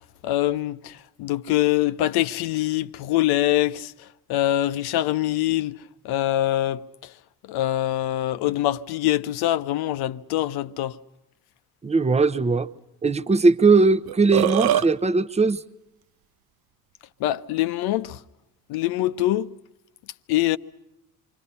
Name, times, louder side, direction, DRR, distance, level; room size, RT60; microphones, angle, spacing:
voice 1, 0.2-0.9 1.2-3.9 4.3-5.7 6.0-6.8 7.5-10.9 17.2-18.2 18.7-19.5 20.3-20.6, left 14 dB, 55° left, 0.9 m, -24 dB
voice 2, 11.8-12.7 13.0-15.6, right 3 dB, 15° right, 0.9 m, -19 dB
Burping eructation, 14.1-14.9, right 11 dB, 50° right, 0.8 m, -22 dB
29.0 x 25.5 x 5.6 m
figure-of-eight pair, 50°, 47 cm